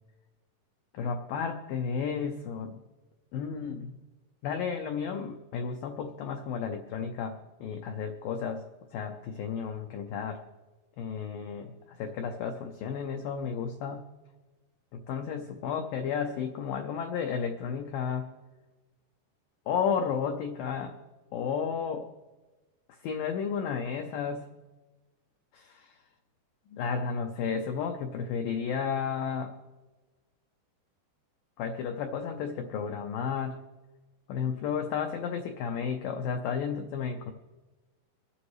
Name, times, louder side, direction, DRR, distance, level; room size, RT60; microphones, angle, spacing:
voice 1, 0.9-2.8 3.3-4.0 4.4-8.6 8.9-10.4 11.0-14.1 14.9-18.3 19.7-21.0 21.3-22.1 23.0-24.5 25.5-26.0 26.7-29.6 31.6-33.6 34.3-37.3, left 6 dB, 85° left, 4 dB, 2.0 m, -32 dB
24.0 x 10.0 x 3.2 m, 1.2 s
omnidirectional pair, 5.1 m